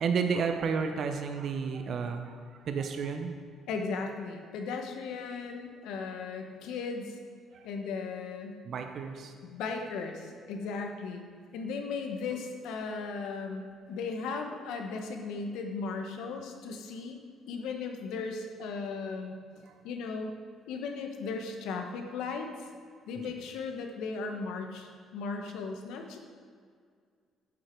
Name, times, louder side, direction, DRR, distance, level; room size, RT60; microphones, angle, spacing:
voice 1, 0.0-3.4 7.5-7.7 8.6-9.3 19.6-19.7 23.2-23.3, right 5 dB, 55° right, 5 dB, 0.7 m, -32 dB
voice 2, 3.7-7.2 7.6-8.6 9.4-11.2 11.5-17.2 17.5-19.3 19.8-20.4 20.7-22.5 23.1-26.2, left 4 dB, 90° left, 4 dB, 1.1 m, -36 dB
9.2 x 8.0 x 4.5 m, 2.1 s
cardioid pair, 125°, 0 cm